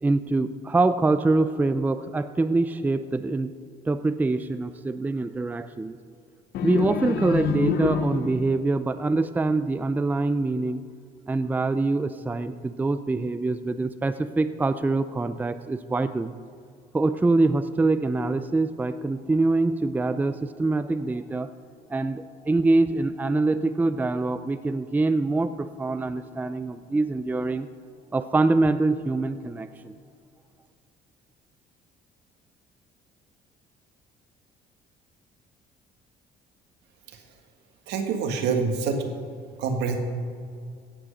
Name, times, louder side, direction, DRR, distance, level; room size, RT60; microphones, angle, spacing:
voice 1, 0.0-3.5 3.9-6.0 6.6-10.8 11.3-16.3 16.9-21.5 21.9-27.7 28.1-30.0, right 3 dB, 10° right, 11 dB, 0.4 m, -24 dB
sound 1, 6.5-8.6, left 6 dB, 70° left, 0.9 m, -27 dB
voice 2, 37.9-39.0 39.6-40.0, right 5 dB, 85° right, 4 dB, 1.7 m, -26 dB
16.5 x 6.2 x 6.6 m, 2.2 s
cardioid pair, 110°, 17 cm